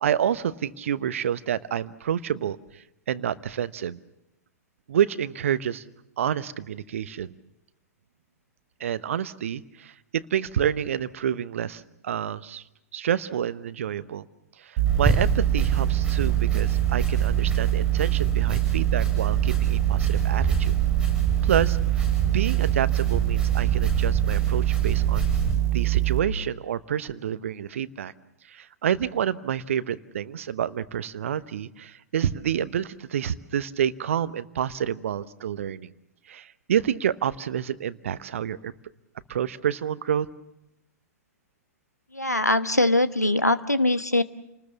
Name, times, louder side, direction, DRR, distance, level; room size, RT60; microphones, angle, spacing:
voice 1, 0.0-4.0 4.9-5.8 6.2-7.4 8.8-12.6 12.9-14.3 14.6-20.7 21.4-25.3 25.7-28.1 28.5-35.9 36.3-38.7 39.3-40.3, right 9 dB, 55° right, 15 dB, 1.0 m, -28 dB
sound 1, 14.8-26.2, right 19 dB, 40° right, 2.3 m, -24 dB
sound 2, 14.9-25.6, right 2 dB, 5° right, 7.9 m, -29 dB
voice 2, 42.1-44.2, left 1 dB, 85° left, 12 dB, 1.1 m, -22 dB
29.5 x 20.0 x 7.1 m, 0.89 s
figure-of-eight pair, 110°, 9 cm